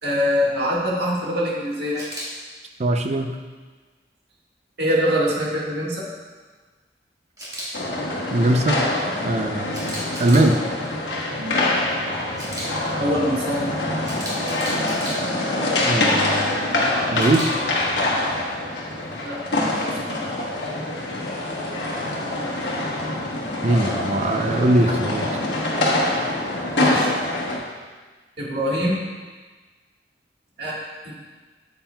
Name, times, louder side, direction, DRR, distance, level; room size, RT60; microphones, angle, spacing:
voice 1, 0.0-2.0 4.8-6.1 13.0-13.7 19.2-20.3 26.7-27.1 28.4-29.0 30.6-30.8 31.0-31.1, equal, 65° right, -4 dB, 1.7 m, -24 dB
Camera, 2.0-2.3 7.4-7.7 9.7-10.5 12.4-12.7 14.0-15.1 17.2-17.5, equal, 20° right, 1.7 m, -33 dB
voice 2, 2.8-3.4 8.3-8.8 9.2-10.6 11.4-11.6 15.8-16.8 17.1-17.5 23.6-25.4, right 1 dB, 40° right, 5 dB, 0.5 m, -21 dB
sound 1, 7.7-27.6, left 2 dB, 70° left, 1.2 m, -25 dB
8.7 x 7.5 x 2.3 m, 1.4 s
head